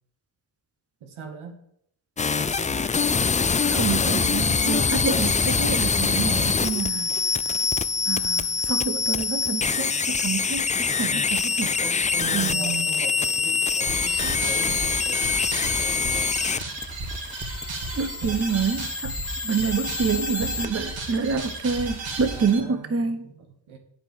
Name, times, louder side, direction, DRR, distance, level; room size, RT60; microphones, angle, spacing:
voice 1, 1.0-1.6 3.7-4.6 11.8-16.8 18.2-18.3 22.3-23.8, right 6 dB, 90° right, 3 dB, 1.4 m, -40 dB
sound 1, 2.2-20.7, left 5 dB, 20° left, 0.3 m, -25 dB
voice 2, 3.8-7.1 8.1-11.7 12.3-12.8 18.0-19.2 19.4-23.2, right 5 dB, 30° right, 8 dB, 1.1 m, -27 dB
sound 2, 13.9-22.6, right 2 dB, 70° right, 2.3 m, -34 dB
7.8 x 4.9 x 7.1 m, 0.72 s
supercardioid pair, 40°, 47 cm